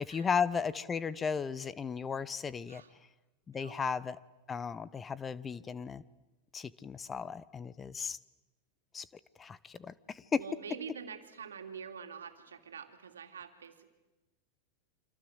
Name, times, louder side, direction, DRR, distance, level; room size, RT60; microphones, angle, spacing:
voice 1, 0.1-2.8 3.5-4.2 4.5-6.0 6.5-8.2 8.9-9.1 9.4-10.4, left 6 dB, 20° left, 18 dB, 0.9 m, -35 dB
voice 2, 10.3-13.9, right 6 dB, 85° right, 6 dB, 2.9 m, -46 dB
28.0 x 26.0 x 8.1 m, 1.1 s
hypercardioid pair, 105°, 0 cm